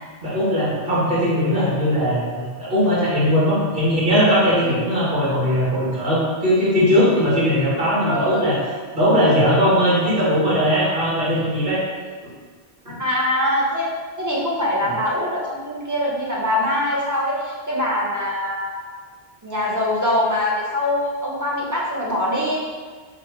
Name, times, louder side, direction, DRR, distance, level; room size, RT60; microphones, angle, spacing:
voice 1, 0.2-8.6 8.9-11.8, equal, 55° right, -9 dB, 1.8 m, -19 dB
voice 2, 8.1-8.4 13.0-13.9 14.2-18.9 19.4-22.6, left 1 dB, 20° right, -5 dB, 0.6 m, -23 dB
3.5 x 2.5 x 4.5 m, 1.5 s
omnidirectional pair, 1.1 m